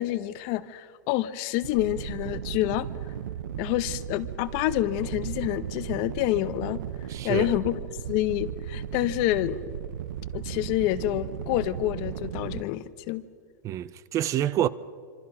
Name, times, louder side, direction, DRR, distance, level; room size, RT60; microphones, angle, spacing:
voice 1, 0.0-2.9 3.6-6.8 7.2-7.8 8.1-9.6 10.3-13.2, left 15 dB, 50° left, 1.0 m, -28 dB
sound 1, 1.6-12.6, right 10 dB, 85° right, 0.7 m, -36 dB
voice 2, 7.1-7.6 13.6-14.7, right 12 dB, 30° right, 0.6 m, -27 dB
26.0 x 25.5 x 5.7 m
supercardioid pair, 140°, 10 cm